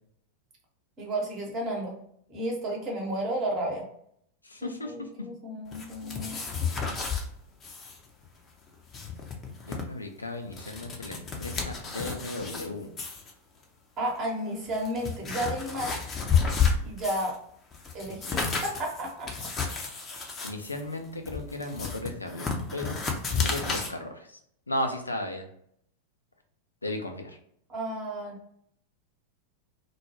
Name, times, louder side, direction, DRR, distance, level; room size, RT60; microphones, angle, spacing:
voice 1, 1.0-1.9 2.3-3.8 4.6-6.4 14.0-16.0 16.8-17.4 17.9-19.3 27.7-28.4, right 1 dB, 30° right, -1 dB, 0.9 m, -32 dB
voice 2, 4.5-4.9 9.7-12.9 20.4-23.0 23.3-24.1 24.7-25.4 26.8-27.4, left 1 dB, 80° left, 4 dB, 0.4 m, -35 dB
sound 1, 5.7-7.2 7.6-8.0 8.2-8.3 8.7-9.8 10.3-12.7 13.0-13.3 14.1-14.2 14.7-17.4 17.7-23.9, left 5 dB, 25° left, 0.5 m, -31 dB
2.2 x 2.1 x 2.9 m, 0.68 s
figure-of-eight pair, 90°, 0 cm